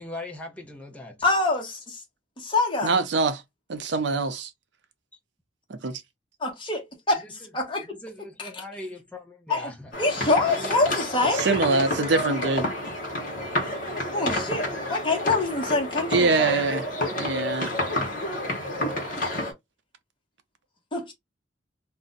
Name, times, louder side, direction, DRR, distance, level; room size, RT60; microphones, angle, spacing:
voice 1, 0.0-1.2 7.2-7.3 8.0-9.9 10.4-10.8 11.2-11.3, left 1 dB, 5° left, 0.6 m, -40 dB
voice 2, 1.2-2.0 2.4-2.9 6.4-7.2 7.5-8.0 8.4-8.6 9.5-9.7 10.0-11.5 14.1-16.5 20.9-21.1, left 3 dB, 25° left, 1.0 m, -25 dB
voice 3, 2.8-3.4 3.7-4.5 5.7-6.0 11.3-12.7 16.1-16.9 17.2-17.7, right 3 dB, 70° right, 0.6 m, -24 dB
sound 1, 9.9-19.5, left 1 dB, 50° left, 1.0 m, -29 dB
2.5 x 2.1 x 3.7 m
head